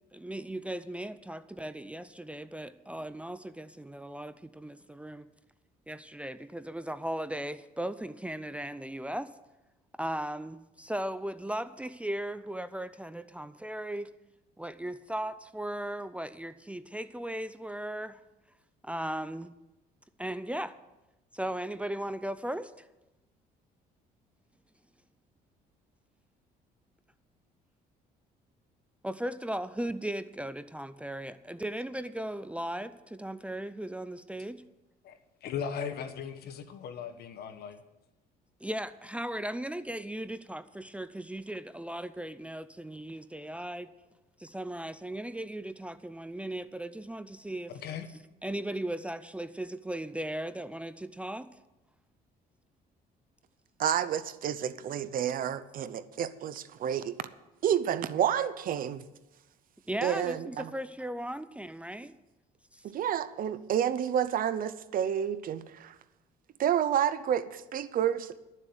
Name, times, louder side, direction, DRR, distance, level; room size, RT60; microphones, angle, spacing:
voice 1, 0.1-5.3 5.9-9.3 10.0-14.1 14.6-18.2 18.8-19.5 20.2-20.7 21.3-22.9 29.0-34.6 38.6-43.9 44.4-47.7 48.4-51.5 59.9-62.1 62.7-62.8, right 1 dB, 5° right, 0.5 m, -37 dB
voice 2, 35.0-37.8 47.7-48.1, left 7 dB, 70° left, 1.3 m, -38 dB
voice 3, 53.8-57.1 57.6-59.0 60.0-60.7 62.8-65.9 66.6-68.3, right 9 dB, 55° right, 0.8 m, -29 dB
12.0 x 7.5 x 8.0 m
cardioid pair, 110°, 17 cm